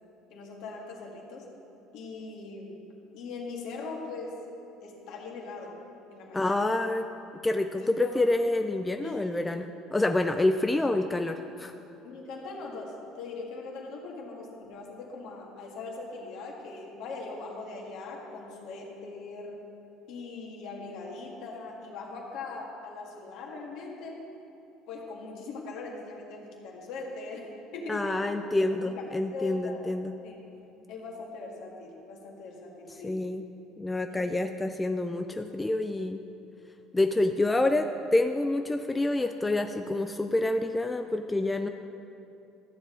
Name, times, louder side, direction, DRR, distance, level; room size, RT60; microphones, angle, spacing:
voice 1, 0.3-1.4 1.9-2.8 3.1-4.4 4.8-5.7 6.1-6.7 7.8-8.3 9.0-9.3 9.6-9.7 12.0-19.6 20.1-24.2 24.9-27.5 27.7-28.3 28.8-29.0 29.3-29.9 30.2-30.3 30.9-33.2 34.1-34.2, left 3 dB, 65° left, -1 dB, 1.8 m, -40 dB
voice 2, 6.3-7.1 7.4-11.7 27.9-30.1 33.0-33.5 33.8-36.2 36.9-41.7, left 2 dB, 15° left, 6 dB, 0.4 m, -27 dB
13.5 x 7.3 x 3.8 m, 2.8 s
hypercardioid pair, 70°, 0 cm